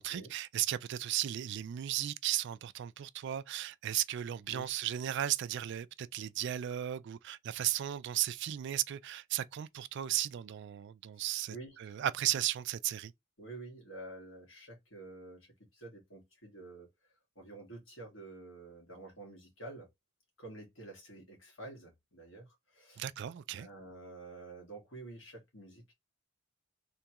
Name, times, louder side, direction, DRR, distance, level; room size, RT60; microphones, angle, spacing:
voice 1, 0.0-13.1 23.0-23.7, right 12 dB, 60° right, 0.3 m, -35 dB
voice 2, 11.5-11.9 13.4-16.9 17.4-19.9 20.4-23.0 23.5-25.9, right 2 dB, 70° left, 1.9 m, -49 dB
3.5 x 3.1 x 2.9 m
head